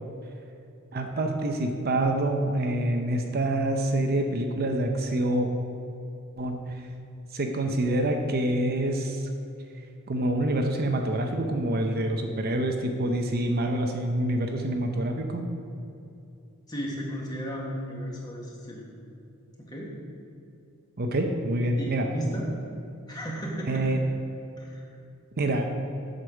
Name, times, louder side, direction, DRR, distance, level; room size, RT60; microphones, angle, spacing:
voice 1, 0.9-5.5 6.4-6.6 7.3-9.3 10.1-15.4 21.0-22.0 23.7-24.0 25.4-25.7, right 1 dB, 45° right, 4 dB, 0.7 m, -26 dB
voice 2, 16.7-18.9 19.6-20.0 21.8-22.5 23.1-24.0 24.6-24.9, equal, 20° left, -3 dB, 1.5 m, -35 dB
7.7 x 5.3 x 6.3 m, 2.6 s
head